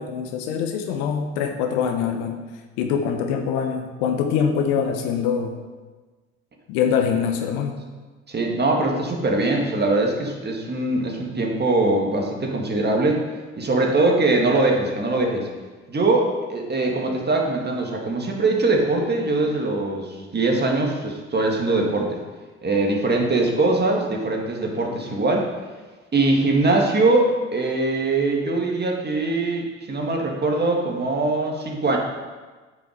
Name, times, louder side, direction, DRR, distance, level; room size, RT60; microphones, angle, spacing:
voice 1, 0.0-2.4 2.8-5.6 6.7-7.8, left 7 dB, 70° left, 4 dB, 1.2 m, -24 dB
voice 2, 8.3-13.2 13.6-15.5 15.9-22.2 22.6-25.5 26.1-32.0, right 2 dB, 30° right, 1 dB, 2.1 m, -22 dB
8.6 x 6.1 x 5.1 m, 1.3 s
hypercardioid pair, 60°, 34 cm